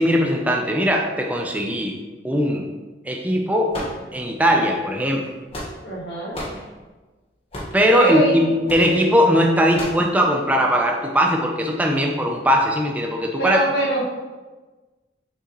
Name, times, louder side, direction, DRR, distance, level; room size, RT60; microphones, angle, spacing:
voice 1, 0.0-2.0 2.2-2.7 3.1-3.8 4.1-5.2 7.7-13.6, equal, 10° right, 1 dB, 0.5 m, -19 dB
sound 1, 3.7-4.5 5.2-6.0 6.3-6.6 7.5-7.8 8.7-8.9 9.7-10.1, equal, 30° left, 1.5 m, -32 dB
voice 2, 5.8-6.3 7.9-8.4 13.4-14.0, right 1 dB, 65° left, -5 dB, 1.7 m, -22 dB
6.5 x 5.3 x 3.0 m, 1.3 s
head